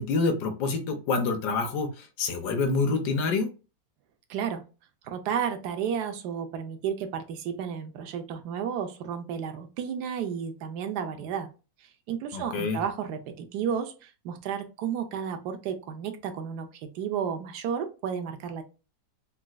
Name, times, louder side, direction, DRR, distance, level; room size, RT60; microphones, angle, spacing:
voice 1, 0.0-3.5 12.3-12.8, left 4 dB, 70° left, 6 dB, 1.1 m, -27 dB
voice 2, 4.3-4.6 5.0-11.5 11.8-18.6, right 7 dB, 75° right, 6 dB, 1.0 m, -32 dB
4.0 x 2.4 x 2.2 m, 0.32 s
omnidirectional pair, 2.1 m